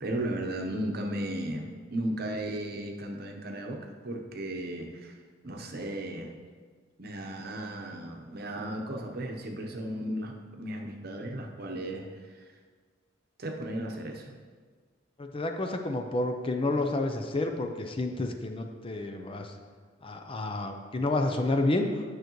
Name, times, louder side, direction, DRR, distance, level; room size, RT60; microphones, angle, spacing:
voice 1, 0.0-5.1 5.4-6.3 7.0-12.4 13.4-14.3, right 1 dB, 55° right, 2 dB, 0.9 m, -35 dB
voice 2, 15.2-19.5 20.0-22.0, left 2 dB, 30° left, 5 dB, 0.5 m, -30 dB
9.2 x 6.5 x 3.1 m, 1.5 s
head